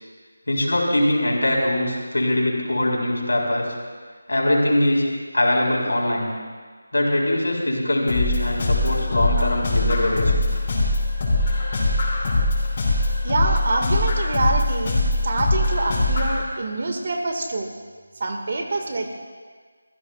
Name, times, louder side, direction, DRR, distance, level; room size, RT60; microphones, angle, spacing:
voice 1, 0.5-3.7 4.3-5.1 5.3-6.3 6.9-10.5, left 1 dB, 75° left, -1 dB, 4.6 m, -22 dB
sound 1, 8.1-16.4, left 2 dB, 30° left, 5.0 m, -22 dB
voice 2, 13.2-17.7 18.2-19.1, right 2 dB, 45° right, 3 dB, 1.7 m, -26 dB
25.5 x 15.5 x 2.3 m, 1.5 s
figure-of-eight pair, 165°, 0 cm